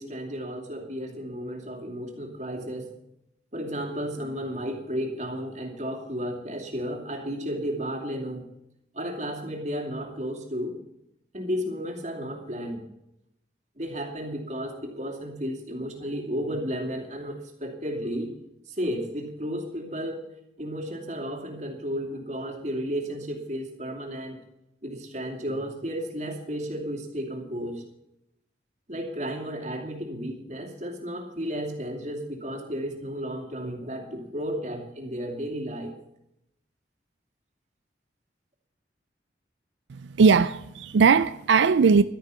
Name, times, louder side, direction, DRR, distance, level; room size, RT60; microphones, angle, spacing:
voice 1, 0.0-2.9 3.5-8.5 8.9-10.7 11.3-12.8 13.8-18.3 18.7-20.3 20.6-24.4 24.8-27.8 28.9-36.0, equal, 40° right, 2.6 m, -33 dB
voice 2, 39.9-42.0, right 5 dB, 90° right, 0.4 m, -19 dB
12.0 x 10.5 x 7.0 m
head